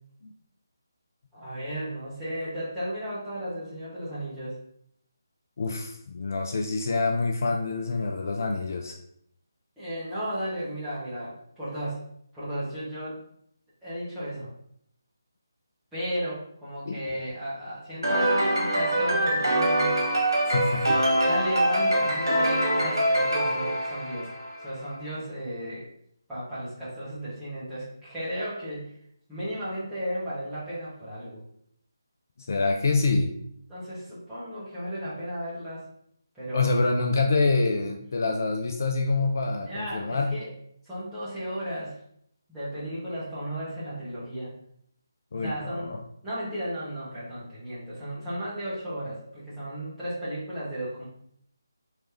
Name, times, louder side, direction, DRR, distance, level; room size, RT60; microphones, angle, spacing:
voice 1, 1.3-4.6 9.8-12.0 12.3-13.2 13.8-14.5 15.9-20.0 21.2-24.3 24.6-25.9 26.3-28.9 29.3-31.4 33.7-35.9 36.3-36.9 39.6-40.5 40.8-42.0 42.5-44.5 45.3-46.0 46.2-51.1, equal, 5° right, -13 dB, 1.4 m, -34 dB
voice 2, 5.6-9.0 16.9-17.0 20.4-21.0 32.4-33.3 36.5-40.4 45.3-46.0, left 3 dB, 50° left, 3 dB, 0.3 m, -26 dB
sound 1, 18.0-24.7, right 1 dB, 75° right, 1.2 m, -24 dB
3.2 x 3.1 x 3.0 m, 0.70 s
figure-of-eight pair, 150°, 2 cm